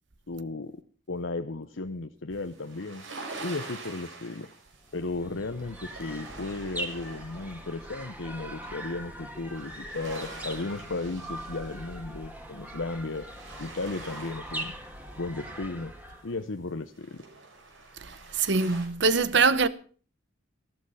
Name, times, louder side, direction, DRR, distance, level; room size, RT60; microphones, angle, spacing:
voice 1, 0.3-0.7 1.1-3.0 3.4-4.5 4.9-13.3 13.6-14.7 15.2-15.9 16.2-17.2, left 3 dB, 80° left, 0.9 m, -35 dB
sound 1, 2.3-8.8 9.1-18.9, right 3 dB, 80° right, 5.4 m, -46 dB
sound 2, 4.8-16.4, right 1 dB, 10° right, 2.4 m, -41 dB
voice 2, 18.4-19.7, right 4 dB, 65° right, 1.0 m, -22 dB
14.5 x 13.0 x 5.6 m
head